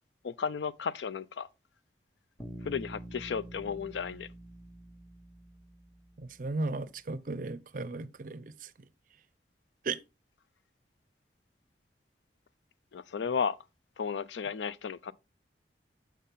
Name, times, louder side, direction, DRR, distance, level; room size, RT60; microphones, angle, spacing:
voice 1, 0.2-1.5 2.6-4.3 12.9-13.6 14.0-15.1, left 6 dB, 80° left, 0.4 m, -34 dB
Bass guitar, 2.4-6.4, right 1 dB, 5° left, 1.0 m, -47 dB
voice 2, 6.2-8.9 9.8-10.0, right 3 dB, 50° right, 0.5 m, -36 dB
7.3 x 5.7 x 3.6 m
head